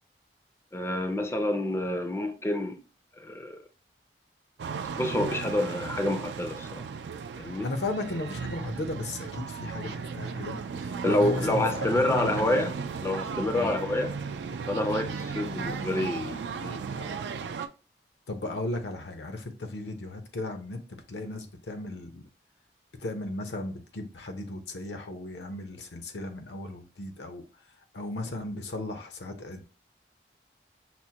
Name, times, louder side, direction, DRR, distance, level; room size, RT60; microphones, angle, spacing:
voice 1, 0.7-2.8 3.2-3.6 5.0-6.9 7.4-7.7 11.0-12.7 13.0-14.2 14.7-17.2, left 1 dB, 15° left, 0.4 m, -28 dB
sound 1, 4.6-17.7, right 5 dB, 80° right, 0.3 m, -35 dB
voice 2, 7.6-10.6 10.8-12.7 13.5-13.7 18.3-22.2 23.0-27.4 27.9-29.6, left 2 dB, 85° left, 0.7 m, -35 dB
5.9 x 2.1 x 2.8 m
head